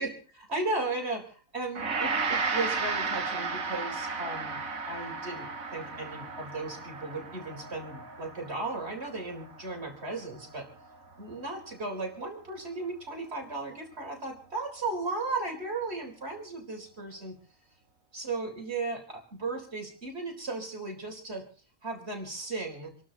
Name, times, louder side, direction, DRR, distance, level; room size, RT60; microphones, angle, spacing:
voice 1, 0.0-4.6 4.9-10.7 11.2-17.4 18.1-21.5 21.8-22.9, right 3 dB, 50° right, 2 dB, 4.4 m, -36 dB
Gong, 1.7-10.9, right 4 dB, 90° right, 2.2 m, -34 dB
27.5 x 12.5 x 4.0 m, 0.37 s
omnidirectional pair, 1.4 m